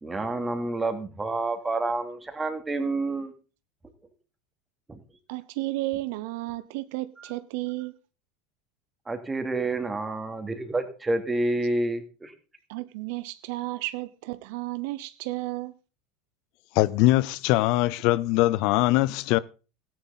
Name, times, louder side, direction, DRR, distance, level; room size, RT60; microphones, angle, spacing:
voice 1, 0.0-3.3 4.9-5.0 9.1-12.3, right 2 dB, 15° right, 2.7 m, -29 dB
voice 2, 5.3-8.0 12.7-15.7, right 19 dB, 70° right, 0.8 m, -33 dB
voice 3, 16.7-19.4, left 17 dB, 60° left, 0.6 m, -22 dB
14.5 x 10.5 x 4.1 m
supercardioid pair, 105°, 0 cm